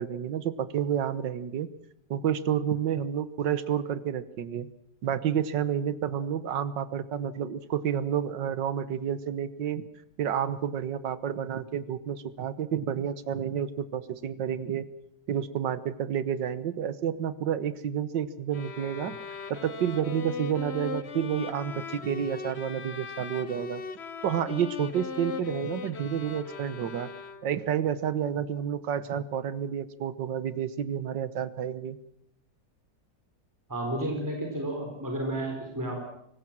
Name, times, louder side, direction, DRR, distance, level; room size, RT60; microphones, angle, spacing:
voice 1, 0.0-1.7 2.1-4.7 5.0-9.8 10.2-14.9 15.3-19.2 19.5-23.8 24.2-27.1 27.4-32.0, right 9 dB, 80° right, 15 dB, 1.8 m, -30 dB
sound 1, 18.5-27.7, left 5 dB, 40° left, 1.2 m, -39 dB
voice 2, 33.7-36.0, right 1 dB, 10° right, 1 dB, 4.3 m, -32 dB
24.0 x 18.5 x 7.4 m, 0.73 s
omnidirectional pair, 1.9 m